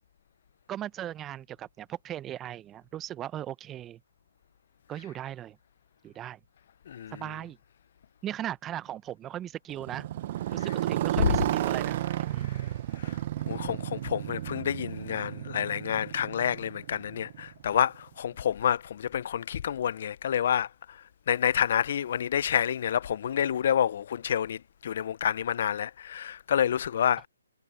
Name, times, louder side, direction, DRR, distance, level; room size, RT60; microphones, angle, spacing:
voice 1, 0.7-4.0 4.9-5.6 6.0-6.4 7.1-7.6 8.2-10.1 10.5-12.5, right 11 dB, 15° right, 0.7 m, -38 dB
voice 2, 6.9-7.3 11.2-11.4 13.0-13.2 13.5-20.7 21.3-27.2, left 9 dB, 50° left, 0.5 m, -28 dB
Motorcycle, 9.7-17.7, right 13 dB, 40° right, 0.8 m, -32 dB
hypercardioid pair, 150°, 0 cm